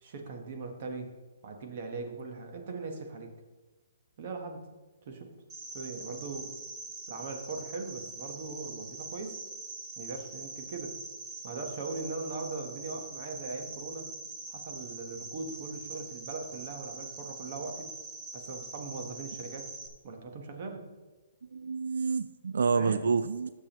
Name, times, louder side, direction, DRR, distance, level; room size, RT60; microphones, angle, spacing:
voice 1, 0.0-1.1 1.4-3.3 4.2-4.6 5.1-5.3 5.7-6.6 7.1-9.4 10.0-11.0 11.4-14.1 14.5-17.9 18.3-19.7 20.0-20.9 22.7-23.1, right 3 dB, 35° right, 4 dB, 1.1 m, -40 dB
Cricket, 5.5-19.9, right 3 dB, 15° right, 0.7 m, -43 dB
voice 2, 21.5-23.5, right 5 dB, 85° right, 14 dB, 0.3 m, -28 dB
12.0 x 7.0 x 3.0 m, 1.2 s
hypercardioid pair, 175°, 0 cm